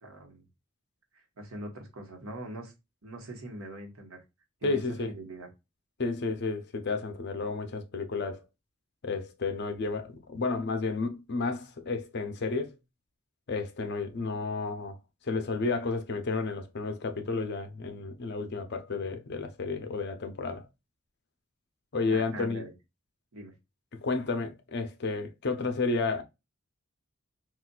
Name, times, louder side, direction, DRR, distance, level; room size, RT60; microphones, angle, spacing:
voice 1, 0.0-0.4 1.1-2.7 3.0-4.2 4.6-5.5 22.1-22.7 23.3-23.5, right 1 dB, 75° right, 1.1 m, -42 dB
voice 2, 4.6-5.1 6.0-8.4 9.0-12.7 13.5-15.0 15.2-20.7 21.9-22.6 24.0-26.2, left 3 dB, 50° left, 0.6 m, -31 dB
4.0 x 2.4 x 2.2 m
head